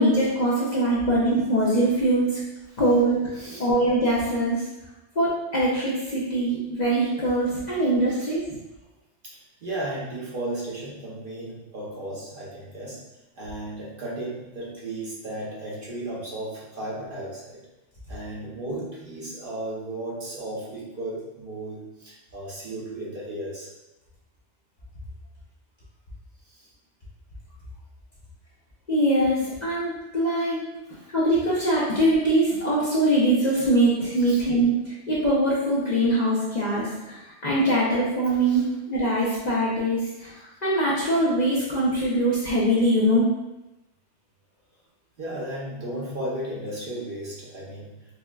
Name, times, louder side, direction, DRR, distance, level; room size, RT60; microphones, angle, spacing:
voice 1, 0.0-2.4 2.8-3.3 3.6-4.6 5.2-8.5 28.9-30.6 31.1-40.3 40.6-43.3, right 1 dB, 45° left, -8 dB, 0.6 m, -22 dB
voice 2, 3.3-3.7 8.1-8.2 9.6-13.0 13.3-17.6 18.1-23.7 26.5-26.7 30.9-31.1 34.2-34.4 38.4-38.7 45.2-48.0, right 1 dB, 50° right, -6 dB, 0.9 m, -35 dB
4.3 x 2.1 x 2.3 m, 0.98 s
omnidirectional pair, 1.2 m